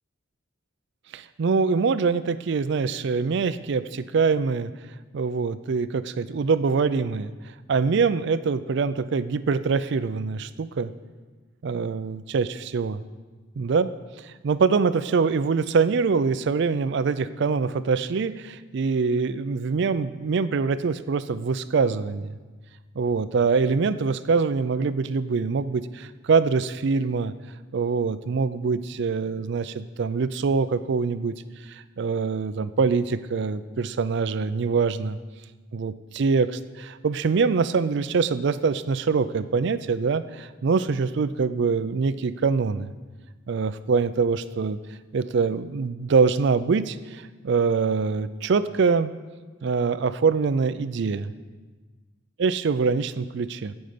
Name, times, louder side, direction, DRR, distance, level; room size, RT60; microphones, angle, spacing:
voice 1, 1.1-4.7 5.1-10.9 11.6-13.0 13.6-13.9 14.2-22.4 23.0-27.3 27.7-35.2 35.7-42.9 43.5-44.8 45.1-49.1 49.6-51.3 52.4-53.7, right 5 dB, 60° right, 14 dB, 0.4 m, -24 dB
15.5 x 5.4 x 5.1 m, 1.3 s
head